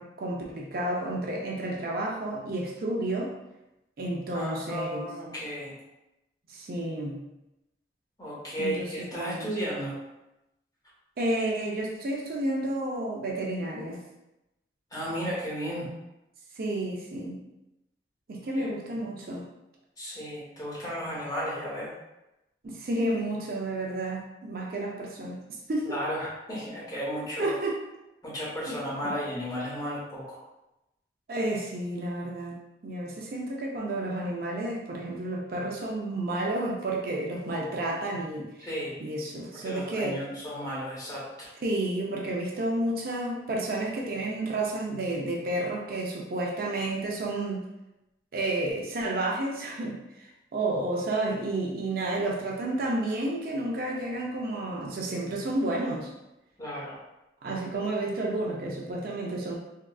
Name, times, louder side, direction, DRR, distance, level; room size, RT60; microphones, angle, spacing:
voice 1, 0.0-3.4 4.0-5.1 6.5-7.2 8.6-9.5 11.2-14.0 16.6-17.4 18.3-19.5 22.6-25.4 25.7-26.0 27.4-27.8 28.7-28.8 29.0-29.2 31.3-32.6 32.8-38.7 39.0-40.2 41.6-47.6 48.3-56.1 57.4-59.5, right 1 dB, 55° right, -2 dB, 0.4 m, -31 dB
voice 2, 4.3-5.8 8.2-10.0 14.9-15.9 18.6-18.7 18.9-19.1 20.0-21.9 25.9-27.5 28.2-30.4 38.6-39.0 39.6-41.5 56.6-57.0, equal, 20° left, -8 dB, 1.1 m, -34 dB
3.6 x 2.3 x 2.3 m, 0.93 s
head